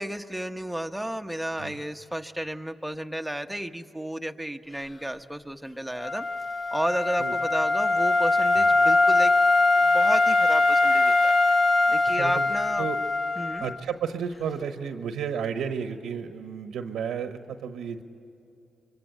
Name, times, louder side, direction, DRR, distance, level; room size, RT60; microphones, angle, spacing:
voice 1, 0.0-6.3 6.7-9.3 9.8-11.3 11.9-12.8 13.4-13.6, right 1 dB, 5° right, 5 dB, 1.1 m, -32 dB
Wind instrument woodwind instrument, 6.0-13.8, left 3 dB, 30° left, 0.9 m, -22 dB
voice 2, 12.1-12.5 12.8-13.0 13.6-18.0, right 7 dB, 85° right, 7 dB, 1.1 m, -32 dB
25.5 x 23.5 x 9.0 m, 2.7 s
cardioid pair, 70°, 0 cm